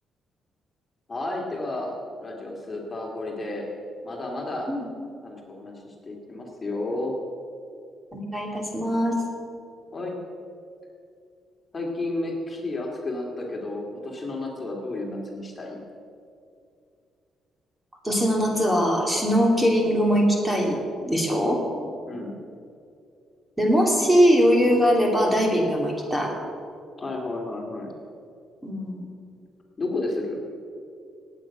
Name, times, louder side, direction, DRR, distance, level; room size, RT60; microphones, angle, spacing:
voice 1, 1.1-3.7 4.0-4.7 5.2-7.1 9.9-10.1 11.7-15.8 22.1-22.3 27.0-27.9 29.8-30.4, left 2 dB, 30° left, 0 dB, 2.7 m, -32 dB
voice 2, 8.1-9.1 18.0-20.8 21.1-21.6 23.6-26.3 28.6-29.0, equal, 10° right, 0 dB, 2.8 m, -21 dB
18.0 x 8.8 x 6.1 m, 2.4 s
cardioid pair, 90°, 0 cm